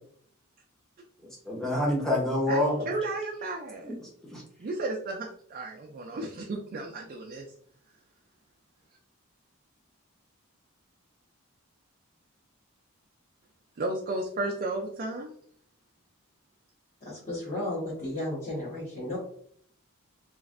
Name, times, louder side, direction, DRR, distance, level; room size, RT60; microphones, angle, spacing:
voice 1, 1.4-2.9 3.8-4.4, left 1 dB, ahead, 0.8 m, -27 dB
voice 2, 2.8-3.9 4.6-7.5 13.8-15.3, right 2 dB, 40° right, 0.4 m, -33 dB
voice 3, 17.0-19.2, left 1 dB, 35° left, 1.1 m, -34 dB
3.1 x 2.5 x 2.4 m
head